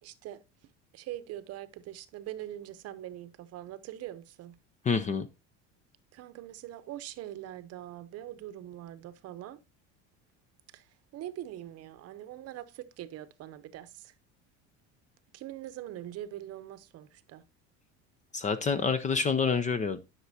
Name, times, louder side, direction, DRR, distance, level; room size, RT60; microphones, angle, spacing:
voice 1, 0.0-0.4 0.9-4.6 6.1-9.6 10.7-10.9 11.1-14.1 15.3-17.4, right 13 dB, 45° right, 0.8 m, -43 dB
voice 2, 4.9-5.3 18.3-20.0, left 5 dB, 20° left, 0.5 m, -27 dB
11.5 x 6.0 x 2.7 m
cardioid pair, 140°, 34 cm